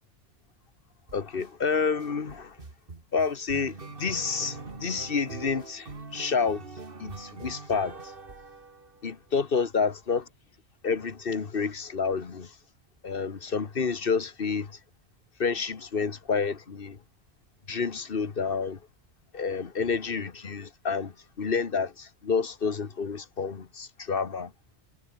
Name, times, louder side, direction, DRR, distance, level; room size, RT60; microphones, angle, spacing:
voice 1, 1.1-2.6 3.1-6.6 7.0-8.0 9.0-10.3 10.8-12.6 13.0-14.8 15.4-17.0 17.7-18.8 19.3-24.5, left 5 dB, 50° left, 1.6 m, -29 dB
sound 1, 1.1-1.5 2.0-9.2, right 3 dB, 50° right, 2.5 m, -43 dB
Telephone, 4.0-4.7 5.2-5.3 7.1-7.2 7.7-7.8 13.1-14.0 21.1-21.3, right 1 dB, 25° right, 6.6 m, -56 dB
omnidirectional pair, 1.2 m